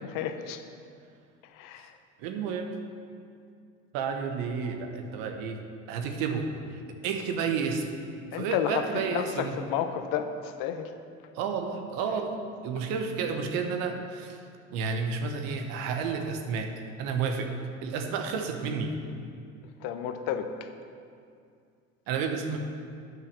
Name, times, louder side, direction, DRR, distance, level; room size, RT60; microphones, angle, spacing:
voice 1, 0.1-0.6 1.6-1.9 8.3-8.8 9.1-10.9 19.8-20.5, left 9 dB, 65° left, 8 dB, 0.8 m, -31 dB
voice 2, 2.2-2.7 3.9-5.6 5.9-7.9 8.3-9.6 11.3-14.4 14.7-16.7 17.0-17.5 17.8-18.9 22.1-22.6, right 5 dB, 70° right, 4 dB, 1.2 m, -31 dB
9.4 x 5.5 x 6.8 m, 2.4 s
hypercardioid pair, 75°, 35 cm